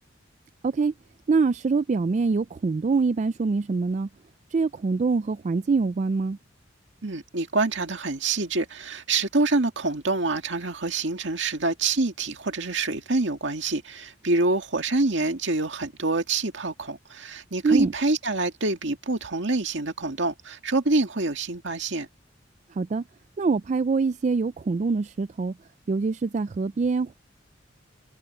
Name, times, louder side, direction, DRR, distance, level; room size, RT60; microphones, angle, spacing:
voice 1, 1.3-4.1 4.5-6.4 17.6-17.9 22.7-23.0 23.4-25.5 25.9-27.1, right 4 dB, 40° right, 0.3 m, -24 dB
voice 2, 7.0-22.1, right 3 dB, 70° right, 2.1 m, -26 dB
head